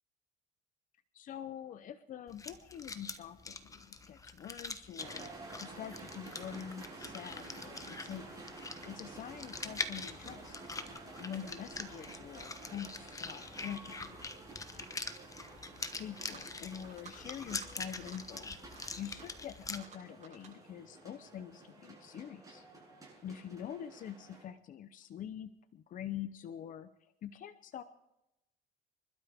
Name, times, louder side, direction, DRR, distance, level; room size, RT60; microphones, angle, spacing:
voice 1, 1.1-5.3 5.6-8.4 8.9-10.6 11.2-14.2 16.0-18.5 19.0-22.6 23.2-26.9 27.2-27.8, left 9 dB, 50° left, 11 dB, 0.7 m, -45 dB
sound 1, 2.3-19.8, left 3 dB, 20° left, 1.1 m, -44 dB
sound 2, 5.0-24.4, right 3 dB, 20° right, 7.7 m, -51 dB
sound 3, 16.1-16.5 16.8-17.1 17.4-17.7 18.0-18.2 18.6-19.4 19.7-20.5, right 6 dB, 45° right, 7.9 m, -55 dB
26.5 x 12.0 x 3.6 m, 0.91 s
cardioid pair, 110°, 17 cm